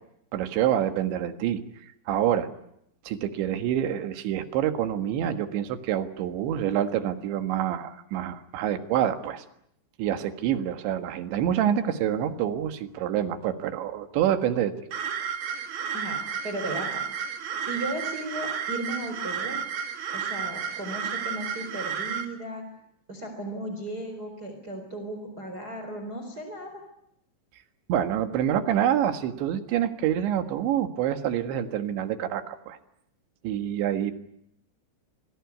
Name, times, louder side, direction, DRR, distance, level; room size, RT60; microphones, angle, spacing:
voice 1, 0.3-1.6 2.1-2.5 3.1-9.5 10.0-14.7 27.9-32.8 33.4-34.1, right 10 dB, 75° right, 9 dB, 3.8 m, -27 dB
sound 1, 14.9-22.3, right 7 dB, 55° right, 3.6 m, -32 dB
voice 2, 16.4-17.0 17.6-19.6 20.1-22.6 23.1-26.8, right 1 dB, 20° right, 5 dB, 4.1 m, -35 dB
27.5 x 19.5 x 9.5 m, 0.76 s
omnidirectional pair, 5.5 m